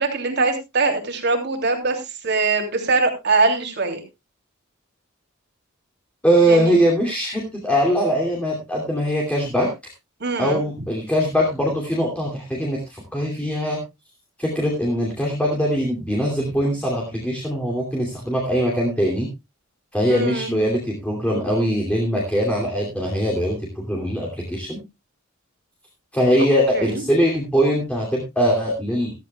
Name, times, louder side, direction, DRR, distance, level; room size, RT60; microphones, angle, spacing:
voice 1, 0.0-4.0 6.5-6.8 10.2-10.6 20.0-20.5 26.7-27.0, right 3 dB, 55° right, 4 dB, 3.1 m, -22 dB
voice 2, 6.2-9.7 10.4-13.8 14.4-19.3 19.9-24.8 26.1-29.1, equal, 5° left, -2 dB, 2.8 m, -21 dB
14.5 x 14.0 x 2.3 m, 0.24 s
head